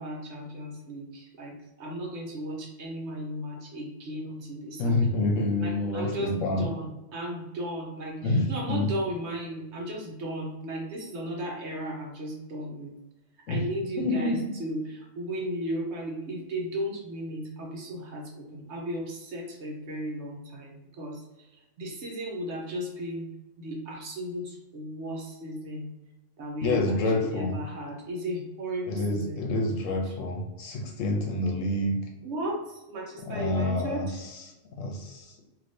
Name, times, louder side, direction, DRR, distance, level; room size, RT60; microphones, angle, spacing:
voice 1, 0.0-4.9 5.6-12.9 13.5-21.5 21.8-23.3 23.6-25.9 26.4-29.4 30.1-30.2 32.2-34.2, equal, 65° right, -1 dB, 1.0 m, -35 dB
voice 2, 4.8-6.7 8.2-8.9 13.5-13.7 14.0-14.4 26.6-27.6 28.9-32.0 33.3-34.3 34.8-35.2, left 2 dB, 80° left, 1 dB, 1.1 m, -27 dB
3.2 x 2.7 x 2.6 m, 1.0 s
omnidirectional pair, 1.3 m